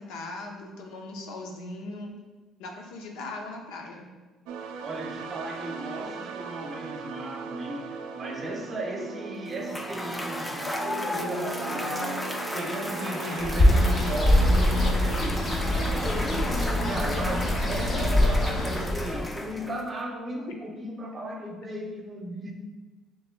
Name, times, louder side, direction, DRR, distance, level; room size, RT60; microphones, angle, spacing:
voice 1, 0.0-2.1 2.6-4.1, left 2 dB, 85° left, 2 dB, 0.6 m, -39 dB
sound 1, 4.5-15.2, right 3 dB, 90° right, 0.3 m, -38 dB
voice 2, 4.8-16.6 16.9-22.5, right 1 dB, 35° right, 1 dB, 0.8 m, -35 dB
Cheering / Applause / Crowd, 9.5-20.0, left 1 dB, 10° left, 0.5 m, -35 dB
Bird, 13.4-19.3, left 1 dB, 35° left, 0.9 m, -23 dB
6.3 x 3.0 x 2.3 m, 1.3 s
supercardioid pair, 85°, 0 cm